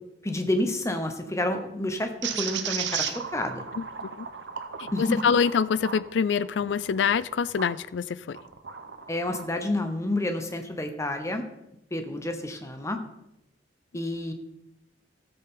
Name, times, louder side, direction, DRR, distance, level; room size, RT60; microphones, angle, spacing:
voice 1, 0.2-3.6 4.9-5.2 9.1-11.4 11.9-13.0 13.9-14.3, left 1 dB, 15° left, 6 dB, 0.9 m, -29 dB
sound 1, 2.2-7.8 8.3-9.5, right 7 dB, 85° right, 0.9 m, -35 dB
voice 2, 5.0-8.4, left 6 dB, 90° left, 18 dB, 0.4 m, -25 dB
14.5 x 6.9 x 3.8 m, 0.88 s
head